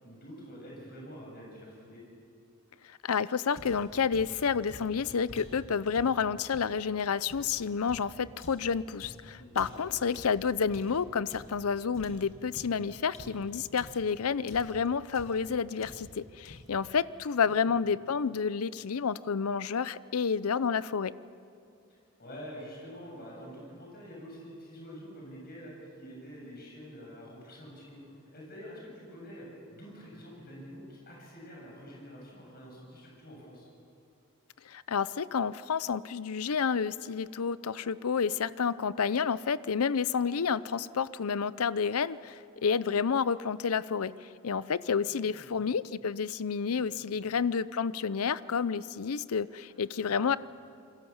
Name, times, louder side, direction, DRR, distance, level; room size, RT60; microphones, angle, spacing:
voice 1, 0.0-2.0 9.3-9.9 17.4-18.2 21.9-28.0 28.3-33.7 45.0-45.7 46.7-47.3 49.7-50.1, equal, 45° left, -2 dB, 7.7 m, -47 dB
voice 2, 2.9-21.1 34.7-50.4, left 6 dB, 85° left, 17 dB, 0.6 m, -30 dB
sound 1, 3.6-6.8 7.3-11.7 11.9-14.1 14.5-14.9 15.1-15.5 15.8-16.2 16.4-16.8, left 1 dB, 60° left, 2.5 m, -49 dB
28.5 x 22.0 x 7.3 m, 2.4 s
head